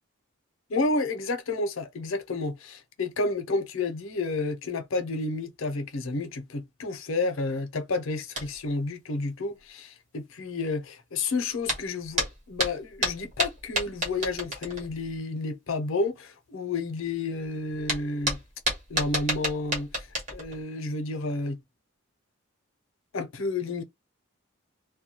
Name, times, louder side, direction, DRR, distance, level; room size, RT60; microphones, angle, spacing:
voice 1, 0.7-18.4 18.9-21.6 23.1-23.8, left 3 dB, 75° left, 0.6 m, -31 dB
sound 1, 8.4-8.7 11.7-15.1 17.4-17.5 17.7-20.6, right 1 dB, 35° right, 1.0 m, -30 dB
2.2 x 2.1 x 2.7 m
head